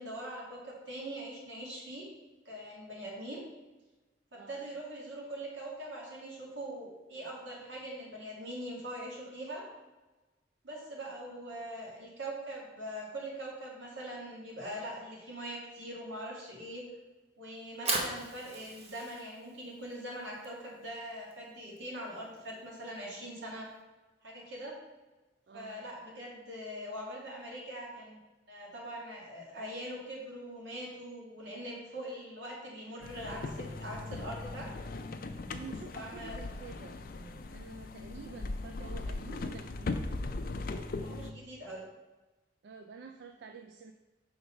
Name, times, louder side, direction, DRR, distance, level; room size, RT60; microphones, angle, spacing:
voice 1, 0.0-2.0 2.5-3.4 4.5-9.6 10.6-16.8 17.4-23.7 24.2-24.7 25.5-28.2 28.5-34.7 35.9-36.4 41.0-41.8, right 1 dB, 80° right, -3 dB, 2.1 m, -42 dB
voice 2, 4.3-4.7 25.5-25.9 35.5-40.0 42.6-43.9, right 5 dB, 60° right, 5 dB, 0.3 m, -49 dB
Fire, 17.6-23.8, right 3 dB, 35° right, 0.8 m, -40 dB
sound 1, 33.0-41.3, left 3 dB, 50° left, 0.4 m, -39 dB
5.3 x 3.9 x 5.7 m, 1.1 s
head